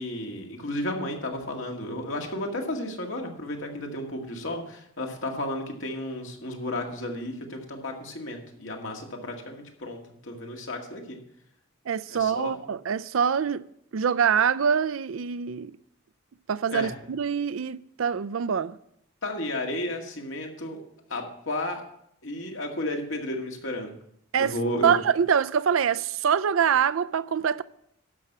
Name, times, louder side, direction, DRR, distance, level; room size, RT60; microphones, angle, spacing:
voice 1, 0.0-11.2 12.1-12.6 16.7-16.9 19.2-20.8 21.1-21.8 22.2-23.9 24.4-24.9, left 1 dB, 70° left, 1.9 m, -33 dB
voice 2, 11.9-13.7 13.9-15.7 16.5-18.8 24.3-24.5 24.8-27.6, right 7 dB, 80° right, 0.4 m, -24 dB
12.0 x 6.0 x 7.4 m
head